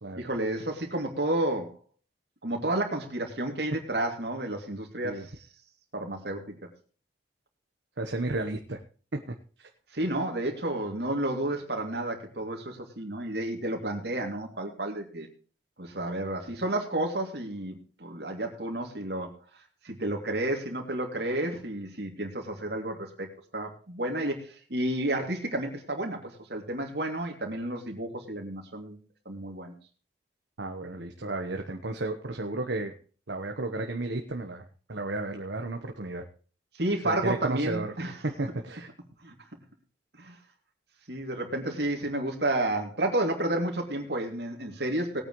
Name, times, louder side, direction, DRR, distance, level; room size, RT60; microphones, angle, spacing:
voice 1, 0.2-1.7 2.4-5.3 5.9-6.5 9.9-15.3 15.8-19.3 19.8-29.0 29.2-29.7 36.8-38.1 39.2-39.3 40.2-40.4 41.1-45.2, right 1 dB, 65° right, 2 dB, 2.7 m, -31 dB
voice 2, 8.0-8.8 9.1-9.7 30.6-32.9 33.3-36.2 37.0-37.9 38.2-38.9, right 2 dB, 80° right, 4 dB, 1.2 m, -33 dB
19.0 x 9.0 x 3.2 m, 0.39 s
head